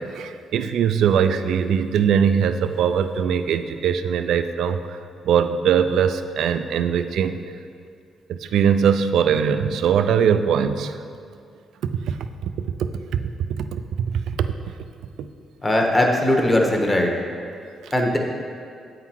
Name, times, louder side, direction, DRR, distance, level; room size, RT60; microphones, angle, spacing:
voice 1, 0.0-5.0 5.2-7.4 8.3-11.0 12.1-12.5 13.1-13.2 13.6-14.5 17.8-17.9, right 7 dB, 75° right, 9 dB, 0.3 m, -21 dB
voice 2, 15.6-17.1 17.9-18.2, left 1 dB, 15° left, 0 dB, 1.0 m, -19 dB
8.1 x 3.8 x 4.5 m, 2.3 s
cardioid pair, 90°, 0 cm